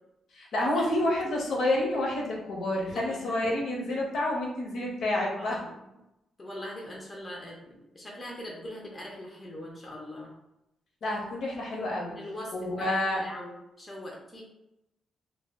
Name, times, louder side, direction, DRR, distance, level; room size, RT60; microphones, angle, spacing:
voice 1, 0.3-5.6 11.0-12.1 12.5-13.2, left 1 dB, 60° left, -2 dB, 0.6 m, -29 dB
voice 2, 2.9-3.3 5.4-5.8 6.4-10.3 12.1-14.4, left 1 dB, 20° left, -3 dB, 0.4 m, -42 dB
2.1 x 2.0 x 3.4 m, 0.89 s
wide cardioid pair, 160°, 0 cm